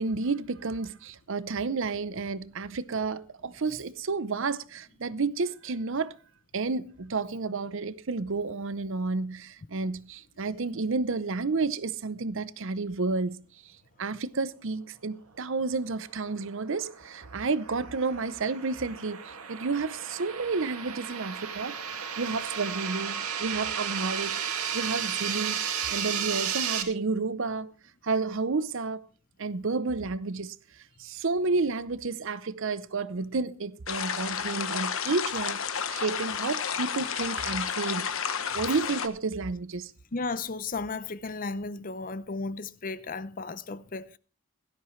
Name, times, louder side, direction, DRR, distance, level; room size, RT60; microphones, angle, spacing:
voice 1, 0.0-6.2 6.5-13.4 14.0-21.8 22.2-24.4 24.7-25.6 25.9-27.7 28.0-29.1 29.4-38.1 38.5-39.9, right 4 dB, 60° right, 0.7 m, -31 dB
sound 1, 16.4-26.8, right 8 dB, 85° right, 2.2 m, -34 dB
sound 2, 33.9-39.1, left 7 dB, 65° left, 1.2 m, -31 dB
voice 2, 40.1-44.2, left 3 dB, 40° left, 0.6 m, -34 dB
17.0 x 13.0 x 3.2 m
head